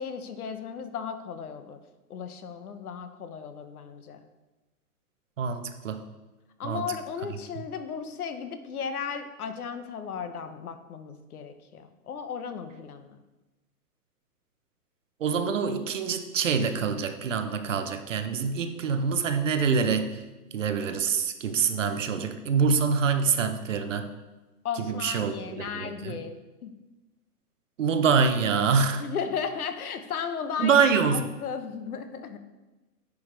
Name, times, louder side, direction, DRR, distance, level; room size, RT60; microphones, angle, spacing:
voice 1, 0.0-1.8 2.1-4.2 6.6-13.2 24.6-26.4 26.6-26.7 29.0-30.8 31.1-32.4, left 6 dB, 70° left, 9 dB, 0.9 m, -35 dB
voice 2, 5.4-6.0 6.6-6.8 15.2-20.1 20.5-24.1 24.8-26.2 27.8-29.0 30.6-31.3, right 6 dB, 55° right, 8 dB, 0.7 m, -25 dB
9.4 x 4.9 x 3.2 m, 1.1 s
hypercardioid pair, 175°, 46 cm